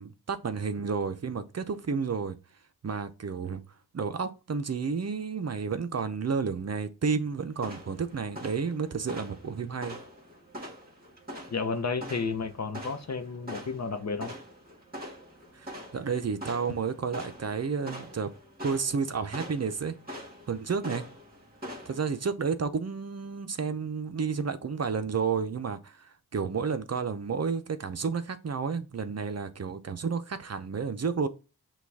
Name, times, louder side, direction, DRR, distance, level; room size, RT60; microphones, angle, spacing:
voice 1, 0.0-2.4 2.8-3.6 3.9-10.0 15.5-18.3 18.6-20.0 20.5-21.1 21.9-31.3, right 5 dB, 45° right, 0.6 m, -31 dB
sound 1, 7.5-22.3, equal, 25° right, 1.9 m, -44 dB
voice 2, 11.5-14.3, left 4 dB, 45° left, 0.8 m, -32 dB
5.9 x 2.4 x 3.3 m
cardioid pair, 50°, 37 cm